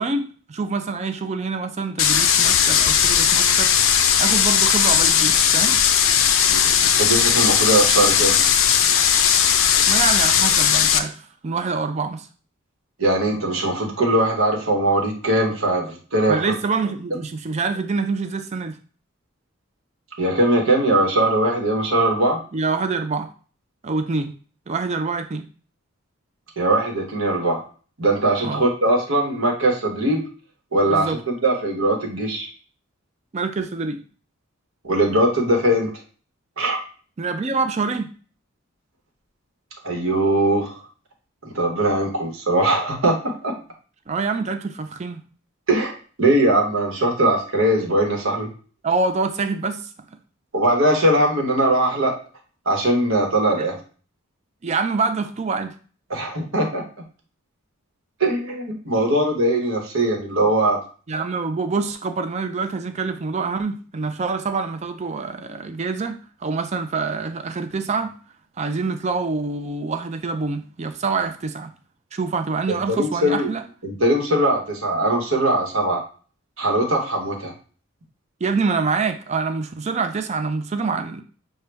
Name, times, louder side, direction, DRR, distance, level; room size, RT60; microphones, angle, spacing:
voice 1, 0.0-3.7 4.2-5.8 9.9-12.3 16.3-18.8 22.5-23.3 23.8-24.3 24.7-25.4 28.4-28.6 30.9-31.2 33.3-34.0 37.2-38.1 44.1-45.2 48.8-49.9 53.6-53.7 54.6-55.7 61.1-68.1 68.6-71.7 72.1-73.6 78.4-81.2, right 4 dB, 30° right, 0.4 m, -26 dB
sound 1, 2.0-11.0, left 8 dB, 70° left, 0.4 m, -17 dB
voice 2, 7.0-8.4 13.0-16.4 20.2-22.4 26.6-27.6 28.0-30.2 30.7-32.5 34.8-35.9 36.6-36.8 39.8-40.7 41.5-43.5 45.7-48.5 50.5-52.1 52.7-53.8 56.1-56.8 58.2-60.8 72.7-73.5 73.8-76.0 76.6-77.5, right 1 dB, 70° right, 1.1 m, -20 dB
6.4 x 2.2 x 3.3 m
head